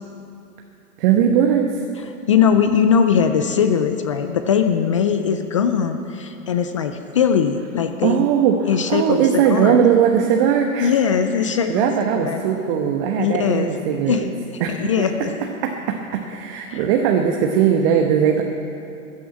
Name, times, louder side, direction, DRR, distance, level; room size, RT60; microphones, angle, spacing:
voice 1, 1.0-1.7 8.0-10.9 11.7-14.3 14.6-15.1 15.6-18.4, right 8 dB, 40° right, 2 dB, 1.2 m, -19 dB
voice 2, 2.3-8.3 8.7-9.8 10.8-12.4 13.2-13.7 14.1-14.3 14.5-15.3 16.7-16.8, left 7 dB, 25° left, 8 dB, 0.3 m, -20 dB
14.5 x 10.0 x 8.5 m, 2.7 s
hypercardioid pair, 115°, 45 cm